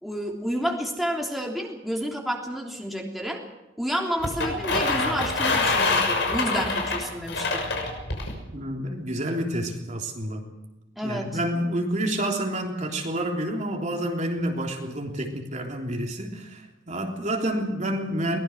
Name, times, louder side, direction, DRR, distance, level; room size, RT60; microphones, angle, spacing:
voice 1, 0.0-3.4 3.8-7.7 11.0-11.3, equal, ahead, -1 dB, 3.3 m, -30 dB
sound 1, 4.2-8.3, left 3 dB, 70° left, 6.4 m, -25 dB
voice 2, 8.5-10.5 11.0-18.4, right 1 dB, 40° right, 1 dB, 3.4 m, -29 dB
23.5 x 19.5 x 6.3 m, 1.0 s
head